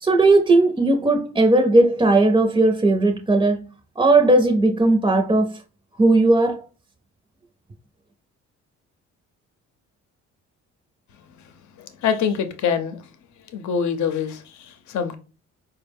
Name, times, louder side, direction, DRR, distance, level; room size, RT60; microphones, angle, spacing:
voice 1, 0.0-3.7 4.0-5.6 6.0-6.6, right 2 dB, 15° right, 0.5 m, -17 dB
voice 2, 11.8-13.1 13.5-15.2, left 7 dB, 70° left, 0.7 m, -25 dB
4.3 x 2.1 x 3.4 m
cardioid pair, 90°, 30 cm